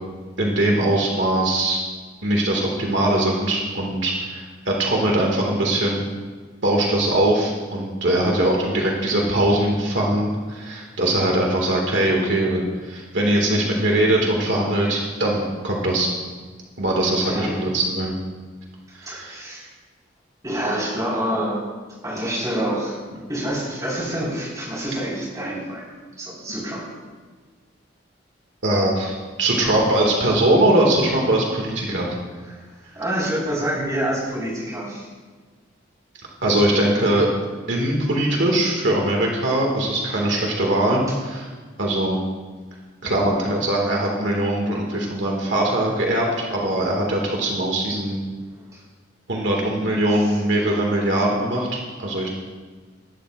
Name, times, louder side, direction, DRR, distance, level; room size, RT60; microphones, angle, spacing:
voice 1, 0.4-1.8 2.2-6.1 6.6-16.1 16.8-18.1 18.9-19.4 28.6-32.1 36.4-37.3 37.7-41.5 41.8-42.2 43.0-48.2 49.3-51.7 52.0-52.3, right 1 dB, 70° right, -1 dB, 2.1 m, -21 dB
voice 2, 8.2-8.8 17.2-17.6 19.0-19.7 20.4-21.6 22.0-23.0 23.3-25.8 26.2-26.9 32.5-35.1 48.7-48.8 50.1-50.4, right 1 dB, 20° right, -5 dB, 4.7 m, -27 dB
20.5 x 12.0 x 2.5 m, 1.4 s
head